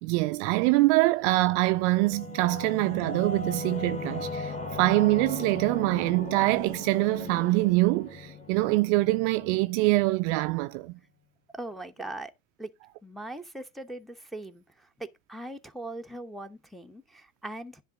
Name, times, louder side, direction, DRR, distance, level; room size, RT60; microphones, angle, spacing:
voice 1, 0.0-10.9, right 20 dB, 50° right, 0.5 m, -24 dB
Singing / Musical instrument, 1.3-10.5, left 3 dB, 15° left, 2.4 m, -38 dB
voice 2, 11.5-12.3 12.6-12.7 13.0-17.8, right 2 dB, ahead, 1.0 m, -40 dB
10.5 x 3.9 x 6.2 m
hypercardioid pair, 90°, 44 cm